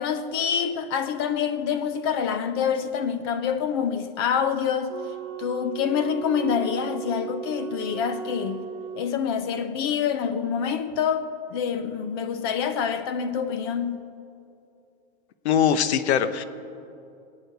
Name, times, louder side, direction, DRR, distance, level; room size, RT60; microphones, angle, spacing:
voice 1, 0.0-5.0 5.4-8.6 9.0-11.3 11.5-14.0, left 7 dB, 25° left, 0.4 m, -26 dB
Wind instrument woodwind instrument, 4.9-9.2, right 8 dB, 30° right, 0.7 m, -36 dB
voice 2, 15.4-16.4, left 8 dB, 80° left, 1.1 m, -21 dB
22.0 x 8.8 x 6.9 m
supercardioid pair, 170°, 33 cm